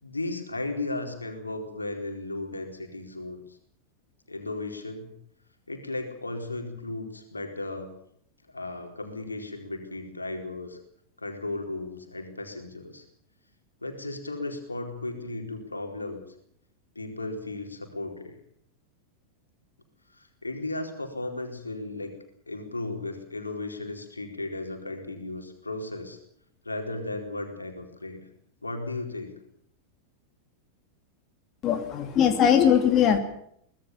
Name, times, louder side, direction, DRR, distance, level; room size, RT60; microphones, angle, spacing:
voice 1, 0.0-3.6 4.3-5.1 5.7-7.9 8.5-10.8 11.2-13.0 13.8-16.3 16.9-18.3 20.1-22.2 22.5-26.2 26.6-28.2 28.6-29.4, left 2 dB, 80° left, 4 dB, 4.3 m, -35 dB
voice 2, 31.6-33.2, left 8 dB, 30° left, 7 dB, 2.5 m, -20 dB
24.0 x 19.5 x 7.2 m, 0.68 s
figure-of-eight pair, 90°, 0 cm